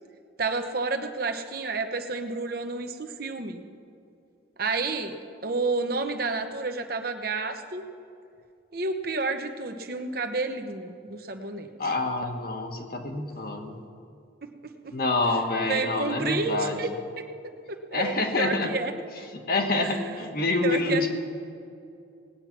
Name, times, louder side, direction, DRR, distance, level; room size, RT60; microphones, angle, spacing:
voice 1, 0.4-3.6 4.6-5.2 5.4-7.8 8.7-11.7 14.4-14.9 15.6-17.2 17.7-18.9 19.8-20.0 20.6-21.1, right 3 dB, 50° right, 6 dB, 1.0 m, -30 dB
voice 2, 11.8-13.8 14.9-16.8 17.9-18.7 19.3-21.1, left 2 dB, 50° left, 3 dB, 1.4 m, -27 dB
19.0 x 8.8 x 5.9 m, 2.5 s
head